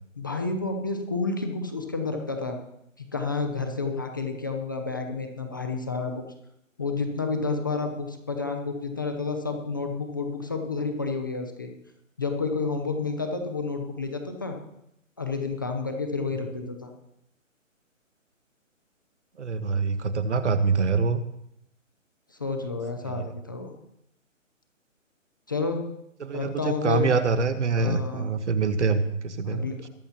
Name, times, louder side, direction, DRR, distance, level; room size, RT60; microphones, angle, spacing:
voice 1, 0.2-2.6 3.0-6.2 6.8-11.7 12.2-14.6 15.2-16.9 22.3-23.7 25.5-25.8 26.3-27.1 27.8-28.3 29.4-29.9, left 4 dB, 15° left, 4 dB, 0.8 m, -30 dB
voice 2, 19.4-21.2 23.0-23.2 26.2-29.6, right 4 dB, 60° right, 11 dB, 1.3 m, -25 dB
21.5 x 12.5 x 3.0 m, 0.78 s
hypercardioid pair, 170°, 40 cm